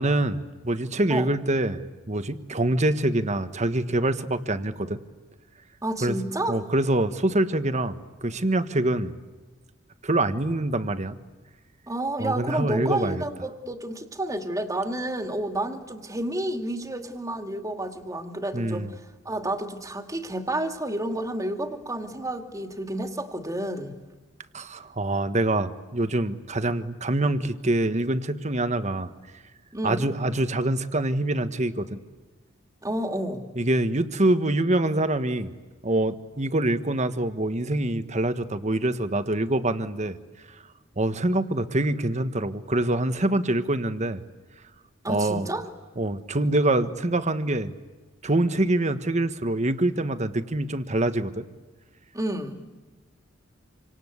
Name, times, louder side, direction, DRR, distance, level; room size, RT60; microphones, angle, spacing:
voice 1, 0.0-5.0 6.0-6.2 6.5-9.1 10.0-11.2 12.2-13.2 18.5-18.9 24.5-29.1 29.8-32.0 33.5-35.5 35.8-40.2 41.0-44.2 45.1-45.5 46.0-47.7 48.2-51.4, right 1 dB, 35° right, 11 dB, 1.4 m, -25 dB
voice 2, 5.8-6.6 11.9-18.9 19.2-23.9 29.7-30.1 32.8-33.4 45.0-45.7 52.1-52.5, right 1 dB, 15° right, 6 dB, 2.4 m, -30 dB
27.5 x 26.5 x 8.2 m, 1.2 s
head